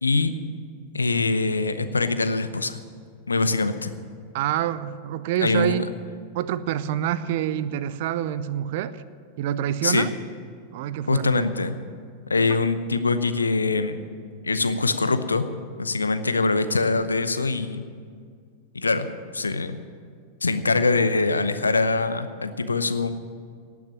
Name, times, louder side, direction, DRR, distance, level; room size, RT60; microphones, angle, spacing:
voice 1, 0.0-0.3 0.9-2.8 3.3-3.9 5.4-5.8 9.8-10.1 11.1-11.7 12.3-14.0 14.4-15.5 15.8-17.8 18.7-19.1 19.3-19.8 20.4-23.1, left 3 dB, 75° left, 11 dB, 0.8 m, -23 dB
voice 2, 4.3-5.9 6.3-9.0 9.4-10.1 10.7-11.4, right 11 dB, 50° right, 14 dB, 0.6 m, -27 dB
18.0 x 6.1 x 9.8 m, 2.1 s
figure-of-eight pair, 90°, 0 cm